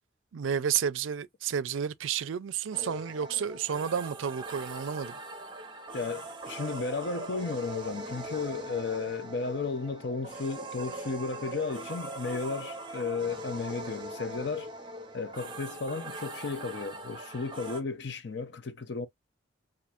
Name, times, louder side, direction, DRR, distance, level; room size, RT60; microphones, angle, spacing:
voice 1, 0.3-5.1, right 8 dB, 75° right, 0.4 m, -31 dB
sound 1, 2.7-17.8, right 2 dB, 25° right, 0.7 m, -41 dB
voice 2, 5.9-14.7 15.1-19.1, left 4 dB, 55° left, 0.6 m, -34 dB
4.3 x 2.6 x 2.4 m
head